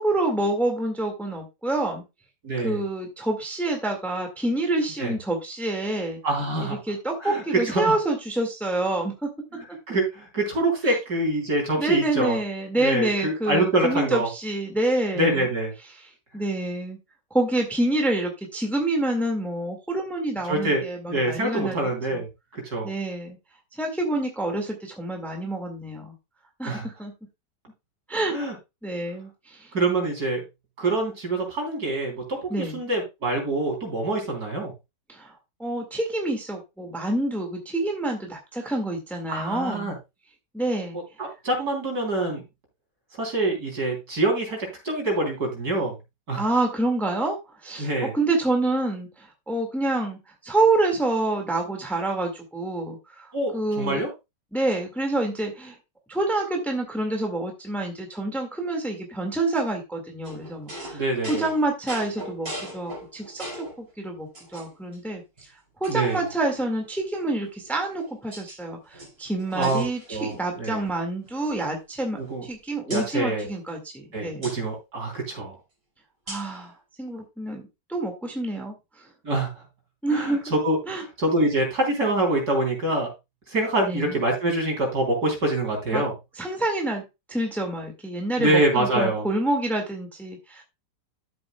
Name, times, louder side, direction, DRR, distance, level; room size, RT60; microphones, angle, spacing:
voice 1, 0.0-2.0 2.6-6.2 6.6-9.3 10.9-11.0 11.8-15.5 16.3-17.0 17.3-21.8 22.1-22.2 22.8-23.4 23.8-26.1 26.6-27.1 28.1-28.3 28.8-29.7 32.5-32.8 35.1-35.3 35.6-39.9 40.5-41.0 46.4-47.4 47.6-47.9 48.1-50.2 50.4-54.0 54.5-55.7 56.1-65.2 65.8-74.5 76.3-77.6 77.9-79.1 80.0-80.4 80.9-81.0 83.8-84.2 85.9-86.0 86.4-90.6, right 2 dB, ahead, 2 dB, 1.8 m, -27 dB
voice 2, 2.4-2.8 5.0-5.1 6.2-6.8 7.2-8.0 9.5-12.4 12.8-14.3 15.1-15.7 20.5-20.8 21.1-22.3 22.5-22.9 26.7-26.9 28.3-28.5 29.7-30.4 30.8-34.7 39.3-40.0 41.4-42.4 43.2-46.0 46.3-46.4 47.8-48.1 53.3-54.1 60.9-61.5 65.9-66.2 69.5-70.8 72.2-72.4 72.9-73.5 74.1-75.6 79.2-79.6 80.1-83.1 83.5-86.1 88.4-89.3, right 2 dB, 60° right, 1 dB, 4.0 m, -25 dB
sound 1, 60.2-63.8 64.3-65.0 65.4-65.5 65.8-66.9 67.6-68.6 68.9-70.4 70.7-70.9 71.2-72.5 72.9-73.1 74.4-74.6 76.3-76.6, right 1 dB, 35° right, 4.4 m, -40 dB
12.5 x 7.8 x 2.3 m, 0.24 s
omnidirectional pair, 1.9 m